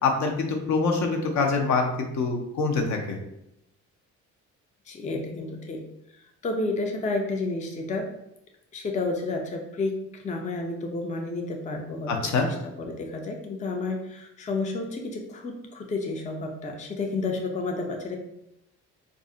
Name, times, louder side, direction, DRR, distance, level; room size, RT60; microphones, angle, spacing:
voice 1, 0.0-3.2 12.1-12.5, left 4 dB, 70° left, 2 dB, 0.6 m, -25 dB
voice 2, 4.9-5.8 6.1-8.1 8.7-18.2, left 3 dB, 25° left, 2 dB, 0.4 m, -31 dB
2.5 x 2.0 x 3.7 m, 0.84 s
cardioid pair, 90°, 30 cm